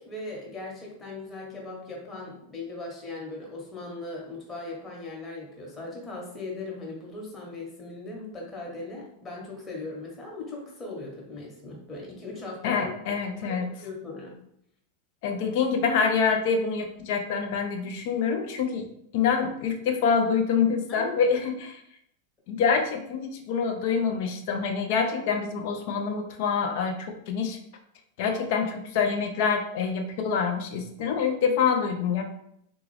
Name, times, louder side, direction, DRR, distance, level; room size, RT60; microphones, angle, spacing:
voice 1, 0.0-12.9 13.4-13.6 13.8-14.3 20.9-21.2 28.3-28.4, left 2 dB, 20° left, -2 dB, 1.2 m, -39 dB
voice 2, 12.6-13.7 15.2-18.9 19.1-21.8 22.5-27.6 28.2-32.2, left 6 dB, 50° left, 4 dB, 0.5 m, -26 dB
3.8 x 2.3 x 3.2 m, 0.73 s
figure-of-eight pair, 90°, 0 cm